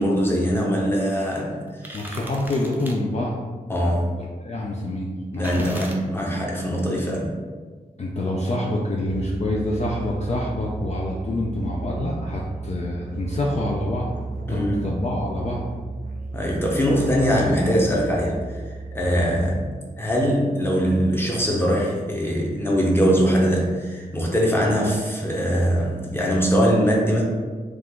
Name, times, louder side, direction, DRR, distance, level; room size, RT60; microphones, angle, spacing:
voice 1, 0.0-2.1 3.7-4.1 5.3-7.3 14.5-14.8 16.3-18.6 18.9-19.6 20.0-27.2, equal, 15° left, -3 dB, 0.9 m, -22 dB
sound 1, 1.7-3.0 5.4-6.0, right 1 dB, 10° right, 0.6 m, -38 dB
voice 2, 1.9-3.4 4.2-5.7 8.0-14.1 14.5-15.7 19.2-19.3, left 1 dB, 45° left, -3 dB, 0.5 m, -27 dB
Musical instrument, 9.1-19.9, right 3 dB, 60° right, 0.7 m, -34 dB
4.8 x 2.5 x 3.6 m, 1.5 s
wide cardioid pair, 110°, 16 cm